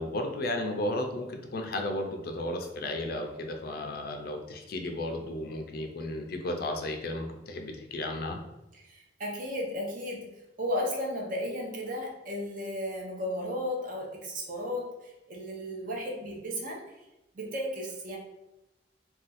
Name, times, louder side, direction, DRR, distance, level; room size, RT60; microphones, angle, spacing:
voice 1, 0.0-8.4, left 1 dB, 55° left, 3 dB, 0.4 m, -34 dB
voice 2, 8.8-10.3 10.6-16.8 17.3-18.2, left 1 dB, 50° right, -1 dB, 0.7 m, -34 dB
2.5 x 2.3 x 4.0 m, 0.95 s
head